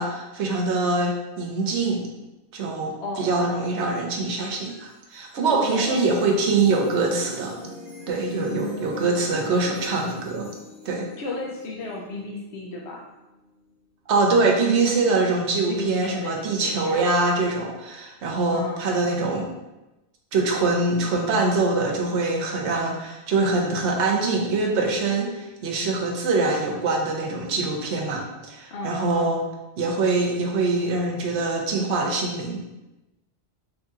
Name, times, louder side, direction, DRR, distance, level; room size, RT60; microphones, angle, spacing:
voice 1, 0.0-2.1 2.5-7.6 8.1-10.5 10.8-11.1 14.1-19.5 20.3-29.4 29.8-32.6, right 3 dB, 80° right, 1 dB, 1.0 m, -24 dB
voice 2, 3.0-3.6 5.5-6.0 8.3-9.1 11.2-13.0 15.7-17.0 18.5-18.8 28.7-29.4, left 2 dB, 75° left, -2 dB, 0.9 m, -34 dB
sound 1, 4.4-13.7, right 1 dB, 5° left, 0.9 m, -43 dB
3.2 x 2.8 x 3.6 m, 1.0 s
omnidirectional pair, 1.2 m